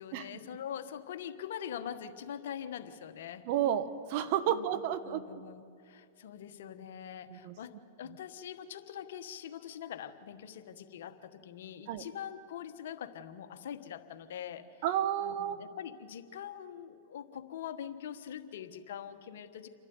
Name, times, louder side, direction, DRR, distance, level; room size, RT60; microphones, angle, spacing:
voice 1, 0.0-3.5 4.5-4.6 5.0-14.8 15.2-19.7, left 9 dB, 70° left, 9 dB, 1.2 m, -43 dB
voice 2, 3.5-5.4 7.3-7.5 11.9-12.0 14.8-15.6, right 10 dB, 55° right, 12 dB, 1.2 m, -31 dB
28.0 x 12.0 x 9.5 m, 2.4 s
hypercardioid pair, 115°, 0 cm